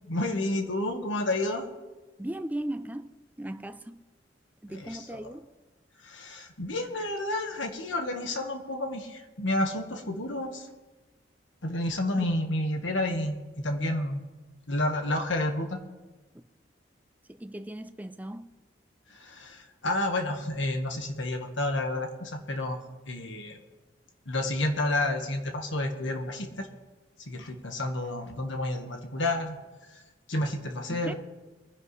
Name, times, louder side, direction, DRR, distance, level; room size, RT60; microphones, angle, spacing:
voice 1, 0.1-1.7 4.7-5.3 6.0-10.7 11.6-14.2 14.7-15.8 19.1-22.8 23.1-23.6 24.2-26.7 27.3-29.6 30.3-31.1, left 1 dB, 85° left, 1.6 m, -30 dB
voice 2, 2.2-4.0 4.6-5.5 12.1-12.3 16.3-16.4 17.3-18.5 30.9-31.1, right 1 dB, 10° right, 0.4 m, -37 dB
22.5 x 10.0 x 3.3 m
head